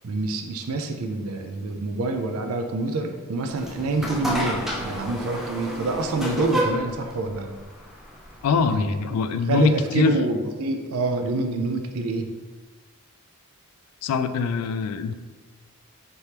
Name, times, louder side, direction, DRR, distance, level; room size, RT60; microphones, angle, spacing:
voice 1, 0.0-7.5 8.7-8.9 9.3-12.3, right 3 dB, 70° right, 5 dB, 0.4 m, -27 dB
sound 1, 3.5-8.8, equal, ahead, 0.5 m, -30 dB
voice 2, 8.4-10.2 14.0-15.1, left 5 dB, 80° left, 11 dB, 0.3 m, -23 dB
4.5 x 3.4 x 2.8 m, 1.3 s
head